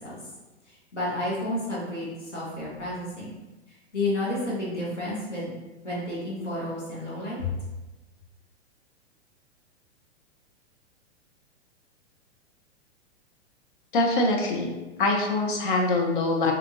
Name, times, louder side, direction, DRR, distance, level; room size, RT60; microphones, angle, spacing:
voice 1, 0.7-3.3 3.9-5.5 5.8-7.5, left 1 dB, 80° left, -6 dB, 1.2 m, -31 dB
voice 2, 13.9-14.7 15.0-16.5, left 2 dB, 50° left, 1 dB, 0.5 m, -24 dB
2.7 x 2.4 x 2.7 m, 1.1 s
figure-of-eight pair, 105°, 35 cm